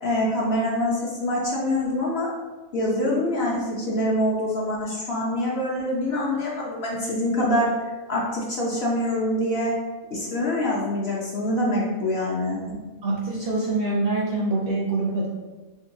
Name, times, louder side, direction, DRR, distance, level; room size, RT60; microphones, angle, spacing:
voice 1, 0.0-2.3 2.7-7.7 8.1-9.7 10.1-12.6, left 1 dB, 55° left, -4 dB, 0.7 m, -25 dB
voice 2, 13.0-15.3, right 2 dB, 60° right, -4 dB, 0.6 m, -25 dB
3.8 x 3.4 x 2.6 m, 1.2 s
omnidirectional pair, 1.5 m